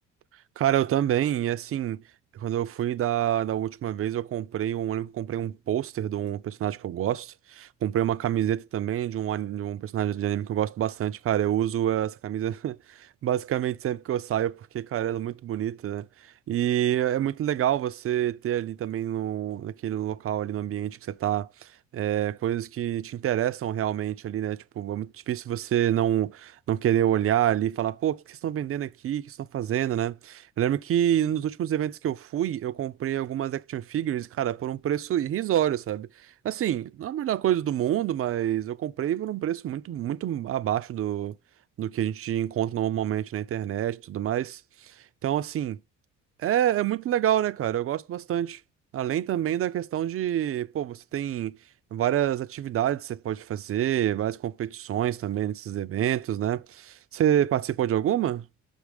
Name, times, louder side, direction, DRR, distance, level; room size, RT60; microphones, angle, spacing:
voice 1, 0.6-2.0 2.3-41.3 41.8-45.8 46.4-48.6 48.9-51.6 51.9-58.5, right 11 dB, 50° right, 0.4 m, -27 dB
5.7 x 5.0 x 3.5 m
cardioid pair, 90°, 30 cm